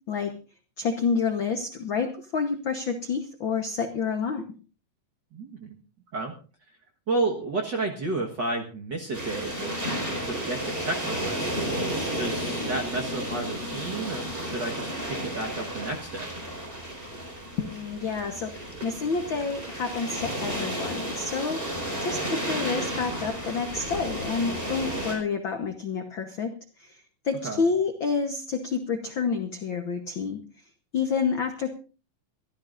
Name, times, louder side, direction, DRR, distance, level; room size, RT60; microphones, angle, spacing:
voice 1, 0.8-4.4 17.6-26.5 26.8-27.0 27.2-30.4 30.9-31.7, left 5 dB, 75° left, 6 dB, 1.1 m, -29 dB
voice 2, 5.3-5.8 6.1-6.3 7.1-11.5 12.2-16.3 27.4-27.6, right 2 dB, 50° right, 1 dB, 1.3 m, -31 dB
sound 1, 9.1-25.1, right 1 dB, 15° right, 4.5 m, -32 dB
23.0 x 14.5 x 2.6 m, 0.36 s
omnidirectional pair, 3.9 m